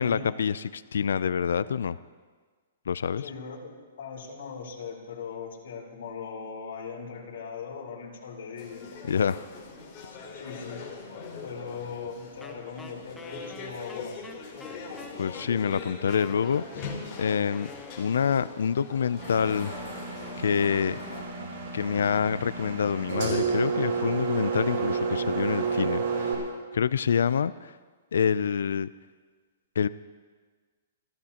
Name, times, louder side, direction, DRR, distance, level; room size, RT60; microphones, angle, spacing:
voice 1, 0.0-2.0 2.9-3.3 9.1-9.4 15.2-16.9 17.2-17.7 18.0-19.8 20.4-21.0 21.7-26.4 26.7-27.7 28.1-28.9 29.8-29.9, left 7 dB, 85° left, 16 dB, 0.4 m, -26 dB
voice 2, 3.2-9.2 10.3-10.9 11.4-14.2, left 5 dB, 65° left, -2 dB, 4.2 m, -39 dB
sound 1, 8.6-21.2, left 4 dB, 30° left, 3.5 m, -42 dB
Wind instrument woodwind instrument, 12.4-18.5, left 3 dB, 5° left, 1.0 m, -46 dB
Engine, 19.2-26.3, right 5 dB, 60° right, 6.5 m, -31 dB
29.0 x 15.0 x 2.9 m, 1.5 s
hypercardioid pair, 165°, 0 cm